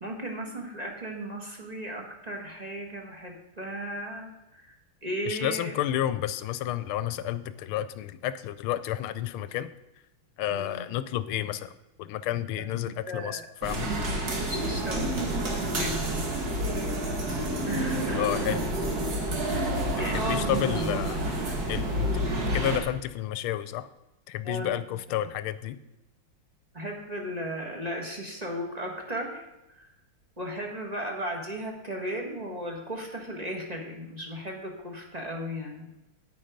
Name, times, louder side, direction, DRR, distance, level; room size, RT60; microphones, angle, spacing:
voice 1, 0.0-4.7 5.0-5.8 10.5-10.8 12.6-12.7 13.1-13.5 14.4-15.5 15.7-16.2 17.7-18.4 19.5-19.6 20.0-21.0 21.5-21.9 24.4-24.8 25.1-25.2 26.7-29.4 29.7-29.9 30.4-35.9, equal, 20° right, 1 dB, 1.4 m, -36 dB
voice 2, 5.3-9.7 10.4-11.7 12.0-13.9 18.1-18.7 20.1-21.2 21.7-23.9 24.3-25.8, left 12 dB, 80° left, 14 dB, 1.5 m, -31 dB
sound 1, 13.6-22.8, right 1 dB, 45° right, 2.2 m, -29 dB
9.5 x 9.2 x 5.1 m, 0.95 s
omnidirectional pair, 2.4 m